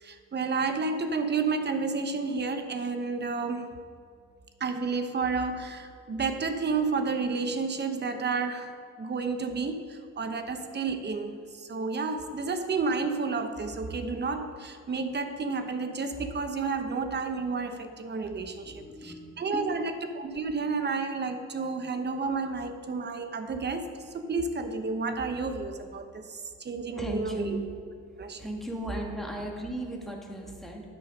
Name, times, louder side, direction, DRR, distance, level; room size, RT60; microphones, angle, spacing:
voice 1, 0.0-3.7 4.6-8.7 9.0-27.6 28.2-28.5, right 4 dB, 35° right, 8 dB, 0.9 m, -31 dB
voice 2, 18.6-19.3 19.5-19.7 26.8-27.6 28.4-30.8, equal, ahead, -1 dB, 1.7 m, -36 dB
9.7 x 6.1 x 5.2 m, 2.3 s
cardioid pair, 90°, 30 cm